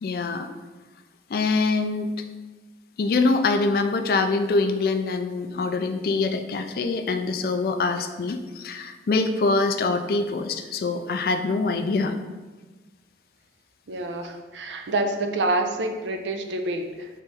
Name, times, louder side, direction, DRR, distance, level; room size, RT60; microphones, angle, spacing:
voice 1, 0.0-0.5 1.3-2.1 3.0-12.2, left 3 dB, 55° left, 8 dB, 0.3 m, -24 dB
voice 2, 13.9-17.1, right 2 dB, 85° right, 5 dB, 0.5 m, -27 dB
4.4 x 3.0 x 3.5 m, 1.2 s
head